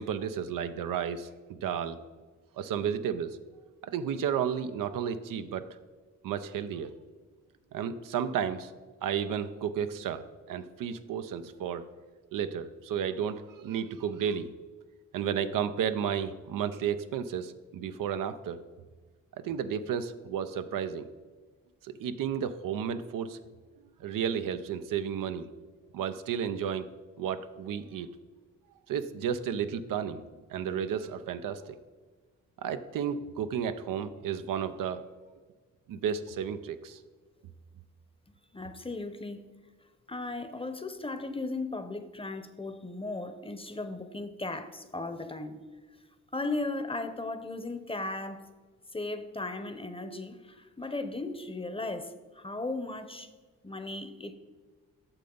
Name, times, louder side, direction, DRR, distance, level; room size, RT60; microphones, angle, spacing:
voice 1, 0.0-2.0 2.6-3.4 3.8-5.6 6.2-7.0 7.7-8.7 9.0-11.9 12.3-14.5 15.1-18.6 19.4-21.1 21.8-23.4 24.0-25.5 25.9-26.9 27.2-28.1 28.9-30.2 30.5-31.8 32.6-35.0 35.9-37.0, right 8 dB, 80° right, 10 dB, 0.5 m, -32 dB
voice 2, 38.5-39.4 40.1-45.6 46.3-48.4 48.9-53.3 53.6-54.3, left 2 dB, 15° left, 10 dB, 0.8 m, -36 dB
8.7 x 6.6 x 3.9 m, 1.4 s
supercardioid pair, 50°, 32 cm